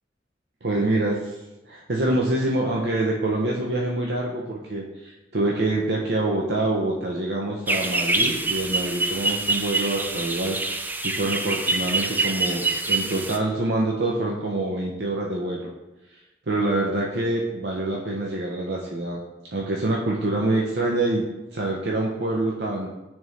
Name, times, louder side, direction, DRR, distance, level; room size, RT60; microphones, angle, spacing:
voice 1, 0.6-1.2 1.6-10.6 11.0-15.7 16.5-19.2 19.5-22.9, right 2 dB, 65° right, -2 dB, 0.6 m, -26 dB
sound 1, 7.7-13.4, right 2 dB, 10° right, 0.3 m, -25 dB
9.0 x 3.5 x 3.1 m, 1.0 s
head